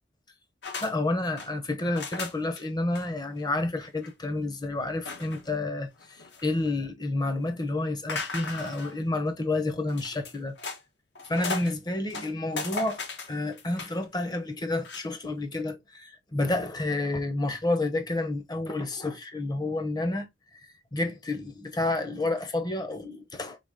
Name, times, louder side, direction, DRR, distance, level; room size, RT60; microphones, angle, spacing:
sound 1, 0.6-1.5 1.9-2.6 2.9-3.1 3.4-3.5 3.8-4.1 5.1-5.5 6.0-6.7 8.1-9.0 9.9-10.8 11.2-11.7 12.1-14.0 14.8-15.0, left 4 dB, 70° left, 1.1 m, -37 dB
voice 1, 0.8-5.9 6.4-10.5 11.3-13.0 13.3-20.3 20.9-23.6, left 2 dB, 25° left, 0.8 m, -29 dB
4.0 x 3.5 x 3.6 m
head